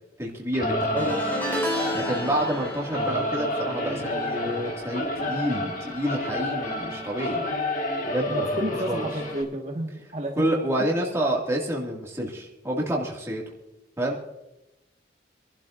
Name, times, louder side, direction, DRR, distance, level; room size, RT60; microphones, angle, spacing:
voice 1, 0.2-1.1 1.9-7.4 8.0-9.1 10.4-13.4 14.0-14.3, right 1 dB, 15° right, -2 dB, 2.1 m, -28 dB
Singing / Musical instrument, 0.5-9.4, left 1 dB, 45° left, 1.6 m, -30 dB
sound 1, 1.0-6.4 6.6-7.0 8.2-8.3, equal, 10° left, 2.8 m, -33 dB
voice 2, 8.3-10.6, right 1 dB, 40° right, -1 dB, 1.6 m, -30 dB
26.0 x 12.0 x 2.5 m, 0.93 s
head